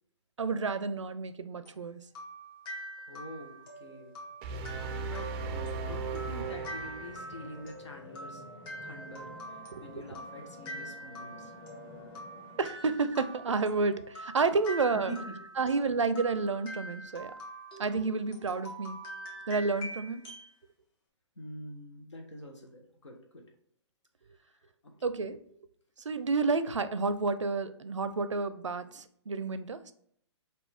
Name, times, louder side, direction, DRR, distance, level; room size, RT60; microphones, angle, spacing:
voice 1, 0.4-2.0 9.7-10.0 12.6-15.1 15.6-17.3 17.8-19.0 19.5-20.2 25.0-25.4 26.0-29.9, right 4 dB, 85° right, 12 dB, 0.4 m, -30 dB
sound 1, 1.7-20.5, right 1 dB, 50° left, 1.5 m, -45 dB
voice 2, 3.1-4.2 4.5-4.7 5.0-8.5 8.8-9.3 9.8-11.5 14.9-15.4 21.4-23.5 24.8-25.1, equal, 75° left, 3 dB, 1.1 m, -45 dB
sound 2, 4.4-7.6, right 4 dB, 25° right, 0.4 m, -37 dB
sound 3, 4.7-12.7, left 2 dB, 20° left, 1.1 m, -50 dB
4.3 x 2.6 x 3.4 m, 0.65 s
figure-of-eight pair, 125°, 15 cm